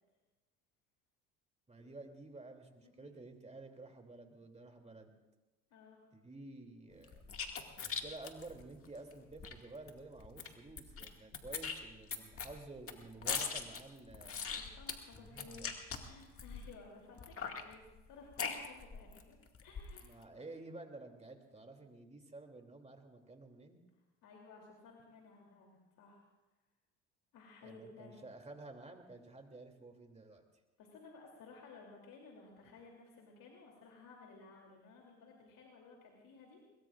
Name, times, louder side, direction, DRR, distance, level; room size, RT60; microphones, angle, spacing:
voice 1, 1.7-5.1 6.1-7.2 7.8-14.4 15.1-15.7 20.0-23.8 27.6-30.4, right 2 dB, 15° right, 3 dB, 2.8 m, -52 dB
voice 2, 2.8-3.1 5.7-6.1 14.6-15.7 15.9-19.4 19.6-20.1 24.2-26.2 27.3-28.2 30.8-36.6, left 4 dB, 60° left, -1 dB, 3.1 m, -56 dB
sound 1, 7.0-9.5 9.9-10.0 10.2-11.1 11.3-16.7 17.2-19.2 19.5-20.1, left 6 dB, 35° left, 2.1 m, -41 dB
22.5 x 21.5 x 2.5 m, 1.1 s
hypercardioid pair, 70°, 37 cm